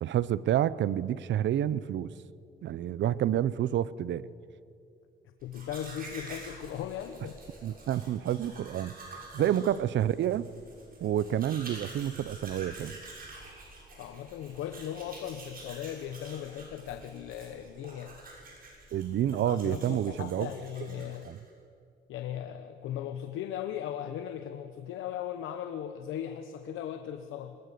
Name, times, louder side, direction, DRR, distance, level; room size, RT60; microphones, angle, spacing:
voice 1, 0.0-2.1 2.6-4.2 7.6-10.5 11.0-13.0 18.9-20.5 21.0-21.4, right 11 dB, 65° right, 18 dB, 0.7 m, -29 dB
voice 2, 5.4-7.4 9.4-9.5 14.0-18.2 19.3-21.3 22.1-27.6, left 10 dB, 90° left, 8 dB, 1.0 m, -38 dB
Domestic sounds home sounds, 5.4-21.5, right 2 dB, 45° right, 6.8 m, -48 dB
21.5 x 19.5 x 6.8 m, 2.5 s
cardioid pair, 90°, 20 cm